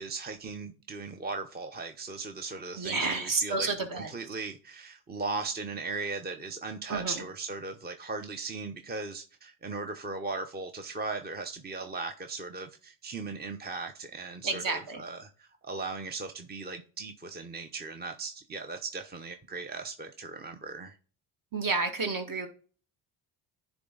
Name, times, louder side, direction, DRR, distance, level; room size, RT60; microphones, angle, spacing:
voice 1, 0.0-21.0, right 3 dB, 20° right, 0.7 m, -38 dB
voice 2, 2.8-4.1 6.9-7.1 14.4-15.0 21.5-22.5, right 3 dB, 45° right, 1.8 m, -30 dB
9.7 x 3.5 x 3.8 m
supercardioid pair, 70°, 44 cm